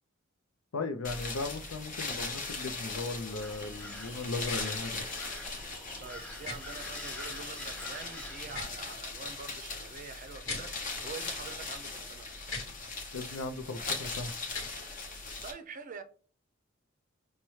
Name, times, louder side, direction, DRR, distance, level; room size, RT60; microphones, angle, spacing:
voice 1, 0.7-5.1 13.1-14.3, left 3 dB, 90° left, 0.6 m, -37 dB
sound 1, 1.0-15.5, left 3 dB, 40° left, 0.8 m, -39 dB
sound 2, 3.4-8.6, left 1 dB, 5° left, 0.7 m, -46 dB
voice 2, 4.3-4.8 5.5-12.3 15.4-16.0, right 5 dB, 40° right, 0.5 m, -46 dB
sound 3, 4.4-4.6 6.4-6.6 8.4-8.8 10.4-10.6 12.4-12.7 14.5-14.7, left 3 dB, 70° left, 1.3 m, -39 dB
5.4 x 2.2 x 3.1 m
head